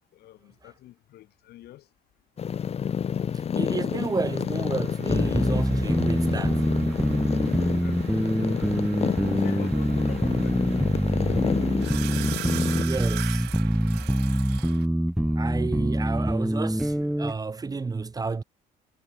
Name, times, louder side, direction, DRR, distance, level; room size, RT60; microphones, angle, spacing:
voice 1, 0.1-1.9 7.6-8.8 9.3-11.4 15.2-15.5, left 14 dB, 70° left, 1.8 m, -47 dB
sound 1, 2.4-12.8, left 7 dB, 40° left, 1.0 m, -29 dB
voice 2, 3.5-6.6 12.8-13.5 15.4-18.4, right 4 dB, 20° right, 1.6 m, -31 dB
sound 2, 4.1-14.9, right 20 dB, 90° right, 1.7 m, -42 dB
sound 3, 5.1-17.3, right 1 dB, ahead, 0.4 m, -25 dB
cardioid pair, 110°, 17 cm